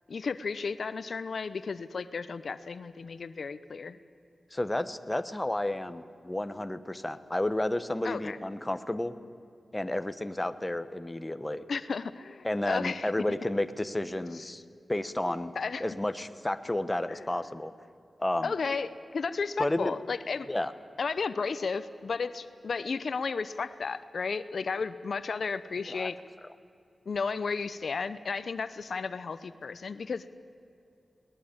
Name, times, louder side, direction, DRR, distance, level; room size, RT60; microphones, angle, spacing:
voice 1, 0.1-4.0 8.0-8.4 11.7-13.1 14.3-14.4 15.6-15.8 17.1-17.3 18.4-20.5 21.0-26.2 27.1-30.3, left 5 dB, 70° left, 14 dB, 0.8 m, -33 dB
voice 2, 4.5-9.1 9.7-11.6 12.4-14.6 14.9-15.5 15.8-17.7 18.2-18.5 19.6-19.9 20.5-20.7 25.9-26.1, left 1 dB, 15° left, 11 dB, 1.1 m, -31 dB
21.5 x 19.5 x 8.8 m, 2.7 s
wide cardioid pair, 80°, 0 cm